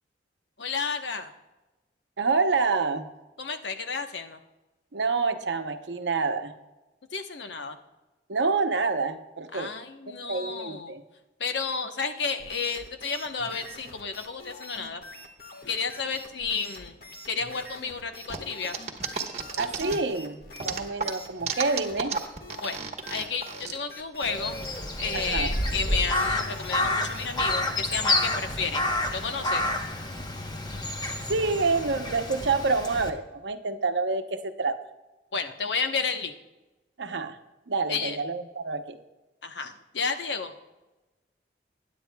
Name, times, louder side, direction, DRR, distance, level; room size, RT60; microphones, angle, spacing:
voice 1, 0.6-1.3 3.4-4.4 7.1-7.8 9.5-10.9 11.4-15.0 15.7-16.9 17.3-18.8 22.6-22.8 23.1-24.6 25.0-28.8 29.1-29.7 35.3-36.3 37.9-38.2 39.4-40.5, left 5 dB, 85° left, 7 dB, 1.0 m, -31 dB
voice 2, 2.2-3.1 4.9-6.5 8.3-9.7 10.2-11.0 19.6-22.2 25.1-25.5 31.3-34.8 37.0-37.4 37.7-39.0, right 4 dB, 85° right, 7 dB, 0.8 m, -27 dB
sound 1, 12.4-28.5, left 1 dB, 55° left, 1.5 m, -46 dB
sound 2, 18.3-20.2 20.6-23.7, right 6 dB, 40° right, 1.1 m, -32 dB
Crow, 24.2-33.1, left 1 dB, 25° left, 1.0 m, -29 dB
20.5 x 10.0 x 2.3 m, 1.1 s
head